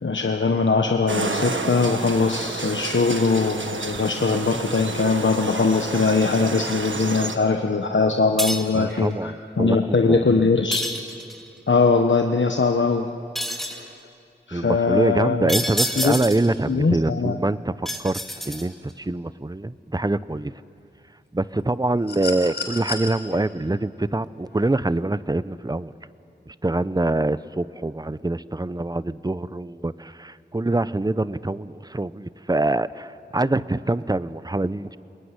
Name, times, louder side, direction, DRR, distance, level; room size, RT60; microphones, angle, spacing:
voice 1, 0.0-9.3 9.6-10.8 11.7-13.1 13.7-13.9 14.5-15.5 16.0-16.1 16.7-17.4, left 4 dB, 80° left, 4 dB, 1.1 m, -21 dB
sound 1, 1.1-7.4, right 3 dB, 85° right, 1.5 m, -30 dB
sound 2, 8.4-8.8 10.7-11.5 13.4-13.9 15.5-16.5 17.9-18.9, equal, ahead, 2.7 m, -28 dB
voice 2, 8.7-10.4 14.5-20.5 21.3-25.9 26.5-35.0, right 2 dB, 20° right, 16 dB, 0.7 m, -25 dB
sound 3, 22.1-23.1 24.6-24.7, left 3 dB, 60° left, 5.1 m, -31 dB
27.0 x 21.5 x 9.7 m, 2.6 s
wide cardioid pair, 45°, 19 cm